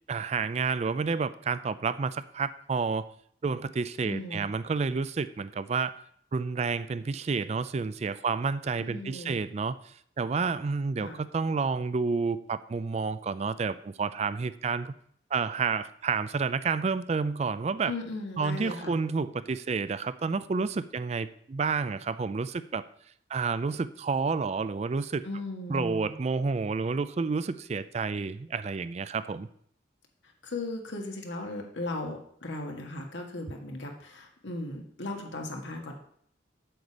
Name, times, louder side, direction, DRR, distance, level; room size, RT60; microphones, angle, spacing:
voice 1, 0.1-3.0 3.4-5.9 6.3-9.8 10.2-14.9 15.3-17.9 18.4-22.8 23.3-25.3 25.7-29.5, right 4 dB, 35° right, 14 dB, 0.3 m, -30 dB
voice 2, 4.0-4.5 8.8-9.3 11.0-11.2 17.8-18.9 25.2-26.1 30.4-35.9, left 2 dB, 85° left, 1 dB, 1.7 m, -37 dB
7.8 x 5.1 x 7.2 m, 0.65 s
head